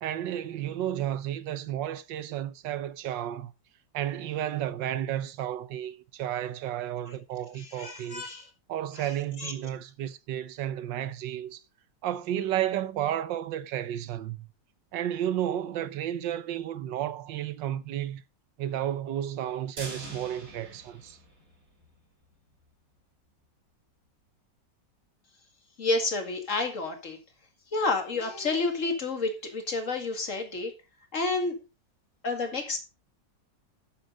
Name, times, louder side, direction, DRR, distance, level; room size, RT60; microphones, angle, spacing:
voice 1, 0.0-3.5 3.9-8.2 8.7-11.6 12.0-14.5 14.9-18.2 18.6-21.2, right 11 dB, 80° right, 1.4 m, -32 dB
voice 2, 7.6-8.5 9.0-9.5 25.8-27.2 27.7-30.7 31.1-31.6 32.2-32.8, left 3 dB, 45° left, 2.4 m, -30 dB
sound 1, 19.8-21.9 22.2-22.3 22.7-22.8, right 2 dB, 50° right, 3.6 m, -44 dB
12.0 x 7.2 x 3.9 m
omnidirectional pair, 2.0 m